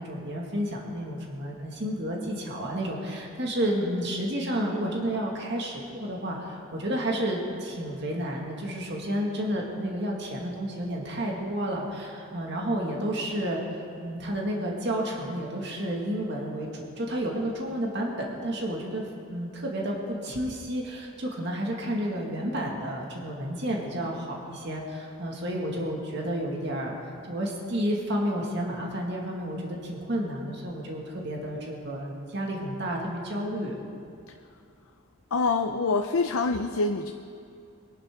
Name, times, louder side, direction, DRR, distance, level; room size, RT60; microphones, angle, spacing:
voice 1, 0.0-13.6 14.0-19.0 19.3-27.0 27.3-33.8, equal, 55° right, -1 dB, 2.0 m, -31 dB
voice 2, 35.3-37.1, left 3 dB, 85° left, 5 dB, 0.6 m, -25 dB
23.0 x 11.0 x 3.7 m, 2.5 s
head